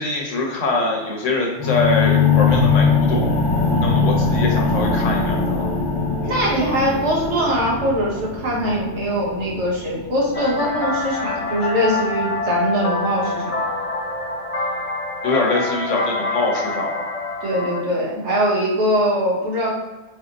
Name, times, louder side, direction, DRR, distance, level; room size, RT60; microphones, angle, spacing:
voice 1, 0.0-3.4 3.8-5.7 15.2-17.1, left 3 dB, 85° left, -1 dB, 1.4 m, -23 dB
sound 1, 1.6-11.6, left 4 dB, 25° left, 0.7 m, -21 dB
voice 2, 6.2-13.6 17.4-19.7, equal, 70° right, -5 dB, 1.5 m, -22 dB
sound 2, 10.3-17.8, left 3 dB, 50° left, 0.4 m, -26 dB
4.0 x 2.8 x 3.9 m, 1.2 s
omnidirectional pair, 1.2 m